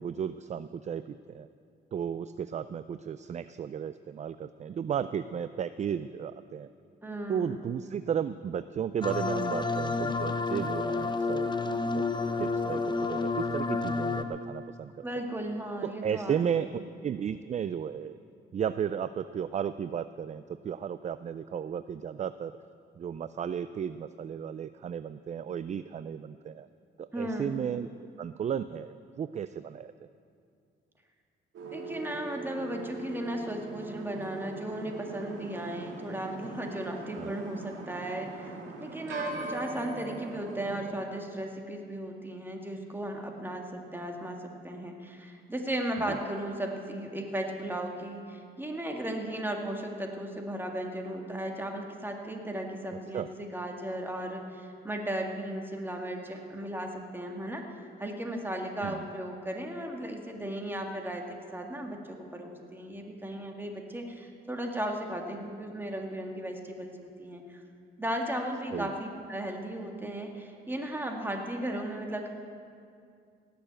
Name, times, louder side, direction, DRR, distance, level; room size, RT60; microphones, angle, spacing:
voice 1, 0.0-1.5 1.9-6.7 7.3-11.6 11.9-12.0 12.4-14.9 15.8-16.7 17.0-18.2 18.5-22.5 23.0-26.7 27.0-27.9 28.2-30.1 37.1-37.3 46.1-46.2 53.1-53.3 58.8-59.1 68.7-68.9, right 8 dB, 35° right, 14 dB, 0.4 m, -34 dB
voice 2, 7.0-7.6 15.0-16.8 27.1-27.6 31.7-67.6 68.0-72.3, right 1 dB, 10° right, 2 dB, 2.0 m, -36 dB
sound 1, 9.0-14.2, left 4 dB, 20° left, 0.9 m, -30 dB
sound 2, 31.5-40.8, right 3 dB, 75° right, 2.4 m, -41 dB
17.5 x 6.9 x 8.9 m, 2.3 s
cardioid pair, 90°, 20 cm